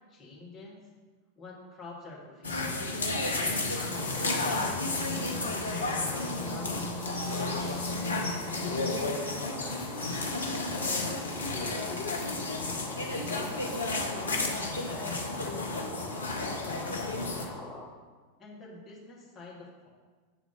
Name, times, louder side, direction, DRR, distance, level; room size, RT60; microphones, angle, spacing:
voice 1, 0.1-0.8 1.4-3.1 3.3-5.0 6.1-10.2 10.7-12.9 13.3-13.9 14.2-16.2 16.6-17.7 18.4-19.9, left 2 dB, 25° left, -4 dB, 1.7 m, -46 dB
sound 1, 2.4-17.5, left 2 dB, 75° left, 0.6 m, -32 dB
sound 2, 3.0-6.7 7.0-14.1, left 3 dB, 45° left, 1.5 m, -51 dB
sound 3, 3.9-17.8, left 2 dB, 5° right, 1.8 m, -43 dB
8.0 x 3.5 x 3.8 m, 1.4 s
figure-of-eight pair, 90°, 0 cm